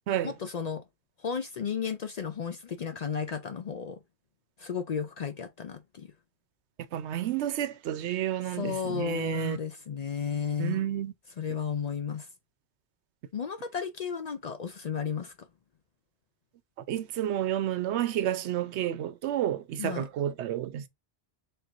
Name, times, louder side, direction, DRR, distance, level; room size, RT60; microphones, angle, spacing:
voice 1, 0.2-0.8 1.2-4.0 4.6-6.1 8.5-10.8 11.4-12.3 13.3-15.5 19.8-20.1, left 6 dB, 60° left, 0.4 m, -33 dB
voice 2, 6.9-9.6 10.6-11.1 16.9-20.9, right 11 dB, 85° right, 0.9 m, -30 dB
4.4 x 3.5 x 2.5 m
omnidirectional pair, 1.1 m